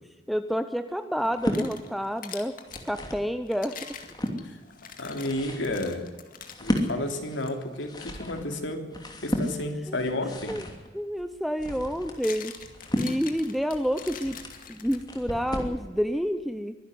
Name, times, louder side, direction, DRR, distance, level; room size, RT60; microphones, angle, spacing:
voice 1, 0.3-2.5 2.8-3.7 9.9-10.0 10.5-10.6 10.9-12.5 13.0-14.4 14.7-16.7, equal, ahead, 10 dB, 0.7 m, -29 dB
sound 1, 1.2-2.9 3.5-6.9 7.4-7.5 8.2-8.4 10.5-10.6 11.8-15.3, left 7 dB, 45° left, 2.1 m, -44 dB
sound 2, 1.2-1.7 2.4-3.3 3.8-4.4 5.0-15.8, equal, 20° left, 2.9 m, -34 dB
voice 2, 5.0-6.1 6.6-8.8 9.2-10.6, left 1 dB, 85° left, 4 dB, 3.3 m, -31 dB
23.5 x 11.5 x 9.6 m, 1.3 s
head